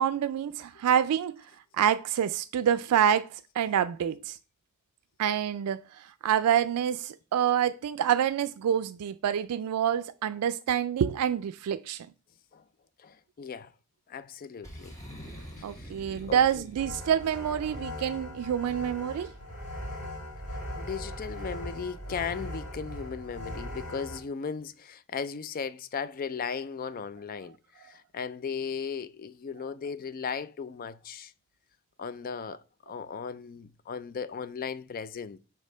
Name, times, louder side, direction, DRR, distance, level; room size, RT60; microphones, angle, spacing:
voice 1, 0.0-1.4 1.8-4.4 5.2-12.1 15.6-19.3, right 9 dB, 85° right, 0.3 m, -27 dB
voice 2, 13.0-13.7 14.1-15.9 16.3-16.7 20.8-31.3 32.0-35.4, left 6 dB, 40° left, 0.4 m, -37 dB
Boom, 14.6-17.4, equal, 15° left, 2.3 m, -45 dB
sound 1, 16.8-24.2, left 1 dB, 80° left, 2.9 m, -39 dB
5.1 x 3.6 x 5.4 m
head